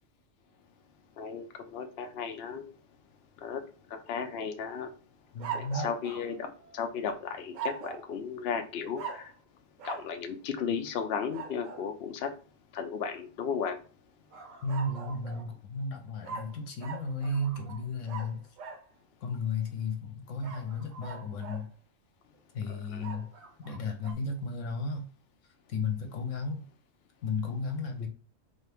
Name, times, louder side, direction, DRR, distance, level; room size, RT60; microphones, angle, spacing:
voice 1, 1.2-2.6 3.4-3.6 3.9-4.9 5.5-9.3 9.8-12.3 12.7-13.8 22.9-23.0 28.0-28.1, left 6 dB, 60° left, 6 dB, 0.8 m, -35 dB
voice 2, 5.3-5.9 14.6-18.4 19.2-21.7 22.5-23.3 23.6-25.1 25.7-26.7 27.2-28.1, left 3 dB, 75° left, 4 dB, 1.2 m, -34 dB
sound 1, 5.4-7.0 7.5-8.1 9.0-9.4 9.8-10.1 11.3-11.9 14.3-15.5 16.2-18.8 20.4-21.7 23.0-24.1, right 5 dB, 90° right, 1.2 m, -42 dB
4.0 x 2.8 x 3.4 m, 0.36 s
omnidirectional pair, 1.3 m